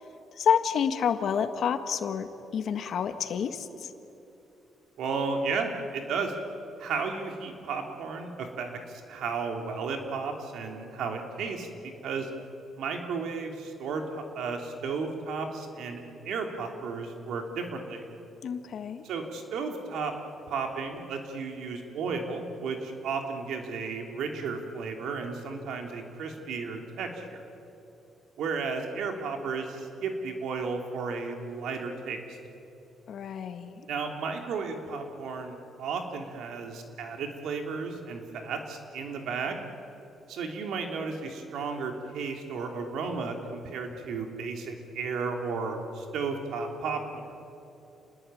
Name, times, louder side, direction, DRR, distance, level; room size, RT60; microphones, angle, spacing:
voice 1, 0.4-3.9 18.4-19.0 33.1-33.9, left 7 dB, 65° left, 9 dB, 1.6 m, -29 dB
voice 2, 5.0-6.3 6.8-12.3 12.8-18.0 19.0-20.1 20.5-27.4 28.4-32.2 33.9-39.6 40.3-47.3, right 4 dB, 80° right, 4 dB, 3.2 m, -33 dB
28.5 x 20.0 x 9.2 m, 3.0 s
cardioid pair, 90°, 0 cm